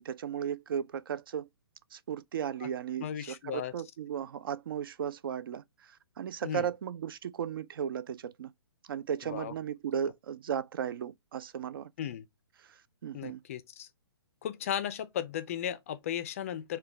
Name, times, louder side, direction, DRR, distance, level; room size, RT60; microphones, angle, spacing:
voice 1, 0.0-1.5 1.9-8.5 8.8-11.9 12.7-13.4, right 8 dB, 55° right, 0.4 m, -36 dB
voice 2, 3.0-3.7 6.4-6.7 9.3-9.5 12.0-12.3 13.1-13.9 14.4-16.8, left 10 dB, 30° left, 0.4 m, -35 dB
3.8 x 2.2 x 3.3 m
hypercardioid pair, 160°, 14 cm